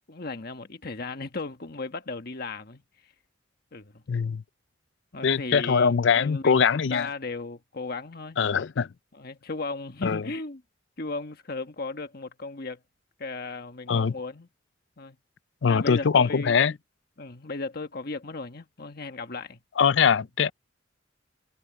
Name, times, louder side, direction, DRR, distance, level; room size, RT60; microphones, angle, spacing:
voice 1, 0.1-2.8 3.7-4.0 5.1-8.7 9.1-10.6 11.0-12.8 13.2-14.5 15.0-15.2 15.7-16.8 17.2-19.6, left 3 dB, 55° left, 1.4 m, -36 dB
voice 2, 4.1-4.4 5.2-7.1 8.4-8.9 10.0-10.2 13.9-14.1 15.6-16.7 19.8-20.5, left 6 dB, 70° left, 0.5 m, -22 dB
head